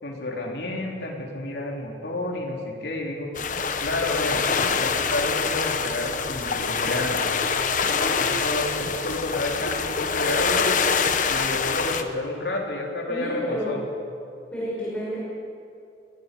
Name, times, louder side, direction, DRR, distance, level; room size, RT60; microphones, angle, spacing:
voice 1, 0.0-3.3 3.8-4.4 4.8-7.3 8.2-10.7 11.3-13.8, left 2 dB, 70° left, -1 dB, 3.8 m, -30 dB
sound 1, 3.4-12.0, left 5 dB, 45° left, 1.1 m, -25 dB
voice 2, 7.8-8.3 13.1-13.8 14.5-15.2, equal, 5° left, -8 dB, 5.9 m, -31 dB
22.0 x 17.5 x 7.0 m, 2.5 s
head